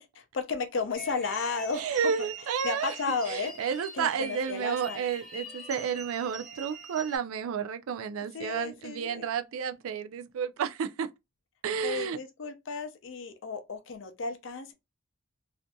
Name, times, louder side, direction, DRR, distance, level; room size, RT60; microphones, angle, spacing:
voice 1, 0.0-1.9 2.2-2.3 2.6-3.5 3.9-5.0 8.3-9.3 11.8-14.7, left 4 dB, 60° left, 0.5 m, -34 dB
sound 1, 0.9-7.2, right 1 dB, ahead, 0.6 m, -43 dB
voice 2, 1.7-2.9 3.3-11.1 11.6-12.2, right 7 dB, 75° right, 0.3 m, -31 dB
2.6 x 2.5 x 2.2 m
head